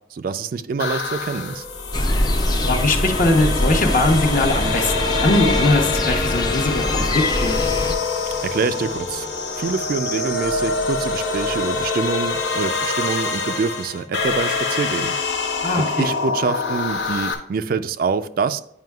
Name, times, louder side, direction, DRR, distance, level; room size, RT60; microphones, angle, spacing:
voice 1, 0.1-1.6 8.4-9.3 9.6-15.2 15.7-18.6, right 5 dB, 50° right, 12 dB, 0.3 m, -25 dB
sound 1, 0.8-17.3, left 4 dB, 80° left, 1.0 m, -25 dB
sound 2, 1.9-8.0, left 1 dB, 20° left, 0.5 m, -23 dB
voice 2, 2.6-7.6 15.6-16.1, left 2 dB, 45° left, 4 dB, 0.8 m, -21 dB
9.2 x 5.5 x 2.3 m, 0.76 s
head